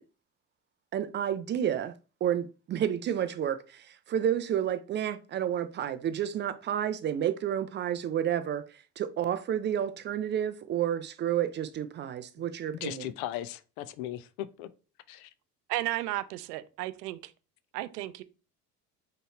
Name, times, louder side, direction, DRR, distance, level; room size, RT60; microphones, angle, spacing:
voice 1, 0.9-1.9 2.2-13.1, right 10 dB, 25° right, 0.3 m, -30 dB
voice 2, 12.8-14.7 15.1-15.3, left 13 dB, 65° left, 0.6 m, -37 dB
voice 3, 15.7-17.3 17.7-18.2, right 16 dB, 75° right, 0.6 m, -33 dB
3.8 x 3.0 x 4.0 m
figure-of-eight pair, 60°, 47 cm